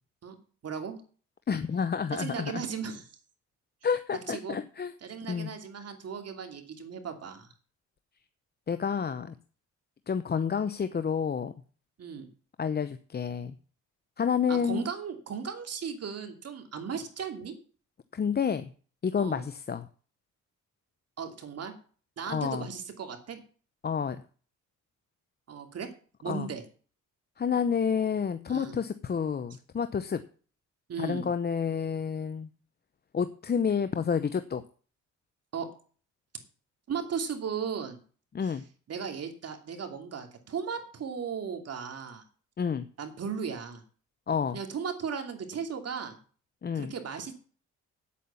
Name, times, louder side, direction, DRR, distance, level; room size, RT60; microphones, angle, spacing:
voice 1, 0.6-1.0 2.1-3.1 4.3-4.6 5.0-7.5 12.0-12.3 14.5-17.5 19.2-19.4 21.2-21.7 22.2-23.4 25.5-25.9 26.2-26.6 28.5-28.8 30.9-31.3 35.5-35.7 36.9-38.0 38.4-38.6 38.9-42.2 43.0-43.8 44.5-46.2 46.7-47.4, right 6 dB, 55° right, 6 dB, 2.8 m, -36 dB
voice 2, 1.5-2.6 3.8-4.9 5.3-5.5 8.7-9.3 10.1-11.5 12.6-13.5 14.2-14.8 18.1-18.7 19.0-19.9 22.3-22.7 23.8-24.2 26.3-26.5 27.4-30.2 31.0-32.5 33.1-34.6 38.3-38.6 42.6-42.8 44.3-44.6 46.6-46.9, left 6 dB, 35° left, 11 dB, 0.8 m, -29 dB
9.4 x 8.5 x 7.0 m, 0.41 s
cardioid pair, 90°, 30 cm